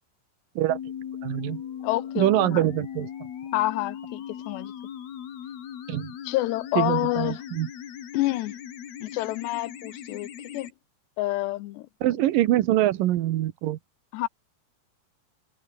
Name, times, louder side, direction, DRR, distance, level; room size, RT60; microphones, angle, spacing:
sound 1, 0.7-10.7, left 9 dB, 70° left, 4.5 m, -39 dB
voice 1, 1.2-1.6 2.2-3.1 5.9-6.1 6.8-7.7 12.0-13.8, right 14 dB, 70° right, 2.4 m, -24 dB
voice 2, 1.8-2.7 3.5-4.7 6.2-7.4 8.1-8.5 9.0-10.7 11.2-11.9 14.1-14.3, left 18 dB, 85° left, 3.0 m, -28 dB
omnidirectional pair, 4.8 m